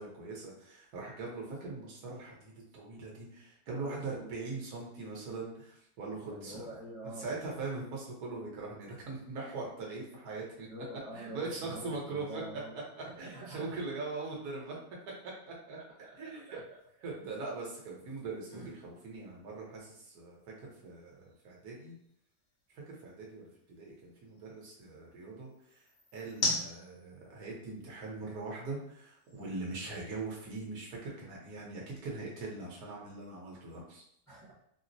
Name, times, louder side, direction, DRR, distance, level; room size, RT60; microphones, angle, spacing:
voice 1, 0.0-6.7 7.2-10.7 11.1-12.4 13.2-14.8 15.5-15.8 16.2-16.6 17.0-21.9 22.7-25.5 26.1-34.0, right 3 dB, 75° right, -3 dB, 1.4 m, -41 dB
voice 2, 3.7-4.3 6.2-7.3 10.7-13.8 16.0-16.6 17.2-17.4 18.5-18.7 34.3-34.5, equal, 20° right, -11 dB, 0.4 m, -47 dB
sound 1, 16.6-30.8, left 2 dB, 50° left, 0.9 m, -44 dB
4.4 x 2.0 x 2.6 m, 0.72 s
omnidirectional pair, 1.7 m